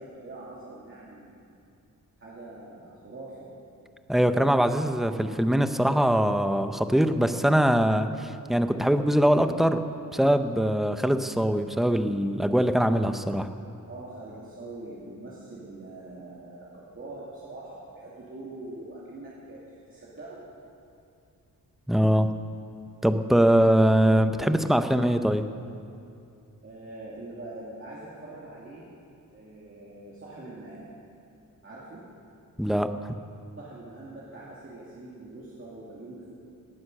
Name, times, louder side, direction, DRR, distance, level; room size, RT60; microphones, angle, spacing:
voice 1, 0.0-1.6 2.2-3.5 13.9-20.4 26.6-28.9 29.3-30.9 31.6-32.1 33.6-36.3, right 2 dB, 40° right, -7 dB, 2.6 m, -43 dB
voice 2, 4.1-9.8 10.1-13.5 21.9-22.3 23.0-25.5 32.6-33.1, equal, ahead, 9 dB, 0.7 m, -22 dB
19.0 x 9.5 x 6.6 m, 2.5 s
wide cardioid pair, 115°, 34 cm